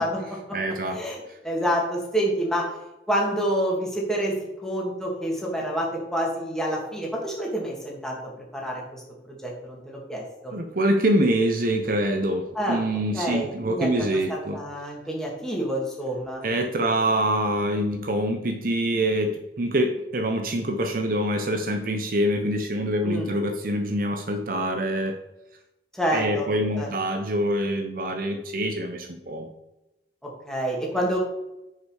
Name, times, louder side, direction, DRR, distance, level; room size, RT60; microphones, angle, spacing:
voice 1, 0.0-0.6 0.9-2.7 3.1-4.4 4.6-8.2 8.5-9.0 9.4-10.5 12.5-12.9 13.1-16.4 23.0-23.3 25.9-26.5 26.7-26.9 30.2-31.2, equal, 5° left, -3 dB, 2.3 m, -28 dB
voice 2, 0.5-1.0 10.5-14.6 16.4-19.3 19.6-25.2 26.1-29.5, right 1 dB, 50° right, 5 dB, 0.9 m, -25 dB
9.9 x 5.3 x 4.9 m, 0.92 s
head